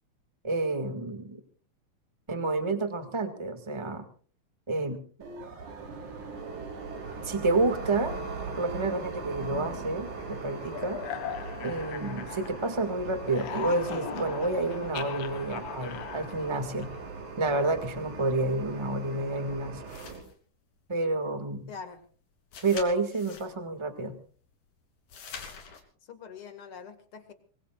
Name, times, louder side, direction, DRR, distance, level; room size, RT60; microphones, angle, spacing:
voice 1, 0.4-1.4 2.3-4.0 4.7-5.0 7.2-8.2 8.6-11.0 11.6-16.9 17.4-19.8 20.9-21.7 22.6-24.1, right 2 dB, 15° right, 8 dB, 1.3 m, -29 dB
sound 1, 5.2-20.2, right 4 dB, 75° right, 4.3 m, -40 dB
sound 2, 9.4-12.9 13.1-17.2, left 10 dB, 65° left, 2.0 m, -40 dB
sound 3, 19.8-20.3 22.5-23.5 25.1-25.8, left 6 dB, 85° left, 4.4 m, -44 dB
voice 2, 21.7-22.1 26.0-27.3, left 6 dB, 50° left, 9 dB, 2.5 m, -44 dB
26.0 x 21.5 x 2.4 m, 0.42 s
omnidirectional pair, 3.5 m